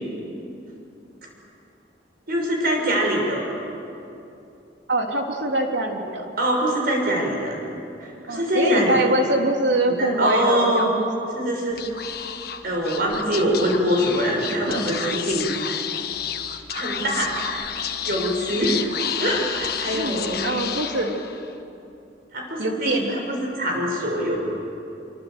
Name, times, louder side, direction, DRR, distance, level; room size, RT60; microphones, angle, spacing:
voice 1, 2.3-3.5 6.4-7.6 8.0-9.0 9.9-10.9 11.3-11.8 12.6-15.4 16.7-17.4 18.0-18.9 19.2-20.4 22.3-24.4, equal, 55° right, 0 dB, 6.6 m, -23 dB
voice 2, 4.9-6.2 8.3-11.1 14.5-15.1 19.9-21.2 22.6-23.2, right 1 dB, 90° right, 2 dB, 3.1 m, -24 dB
Speech / Whispering, 11.7-21.5, left 8 dB, 60° left, 1.4 m, -31 dB
26.0 x 24.0 x 8.0 m, 2.8 s
head